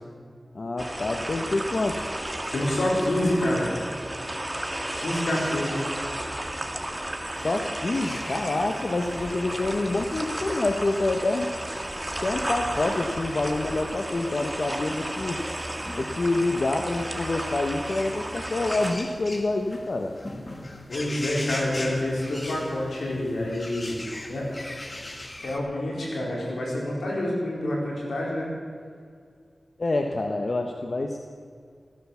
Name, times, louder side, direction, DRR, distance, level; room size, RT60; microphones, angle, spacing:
voice 1, 0.5-2.0 7.4-11.5 12.2-15.4 16.0-20.1 24.1-24.3 29.8-31.2, left 2 dB, 60° left, 3 dB, 1.2 m, -27 dB
sound 1, 0.8-18.9, right 1 dB, 15° right, 1.9 m, -33 dB
voice 2, 2.5-3.7 5.0-5.8 20.9-24.0 24.3-24.5 25.4-28.5, left 1 dB, 90° left, -3 dB, 4.4 m, -27 dB
sound 2, 7.9-25.6, left 1 dB, 40° left, 1.9 m, -42 dB
15.5 x 12.5 x 7.1 m, 2.2 s
cardioid pair, 45°, 0 cm